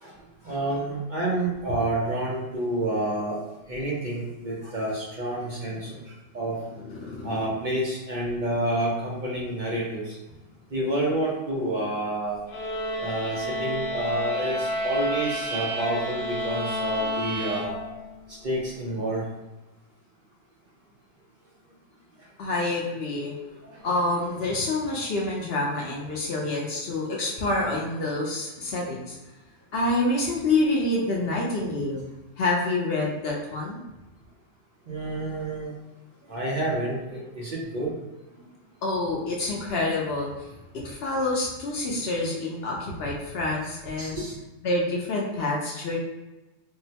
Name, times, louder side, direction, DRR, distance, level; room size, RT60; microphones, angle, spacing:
voice 1, 0.4-3.4 3.7-5.9 6.3-6.5 7.2-10.0 10.7-12.4 13.0-17.8 18.4-19.2 34.9-35.7 36.3-37.9 42.9-43.0 44.0-44.3, right 1 dB, 50° right, -5 dB, 0.6 m, -29 dB
voice 2, 6.8-7.3 22.4-23.3 23.8-29.2 29.7-32.0 32.4-33.8 38.8-40.5 40.7-44.2 44.6-46.0, left 2 dB, 60° left, -2 dB, 0.6 m, -27 dB
sound 1, 12.5-18.2, equal, 75° left, 1.1 m, -30 dB
3.7 x 2.1 x 2.7 m, 1.0 s
omnidirectional pair, 1.5 m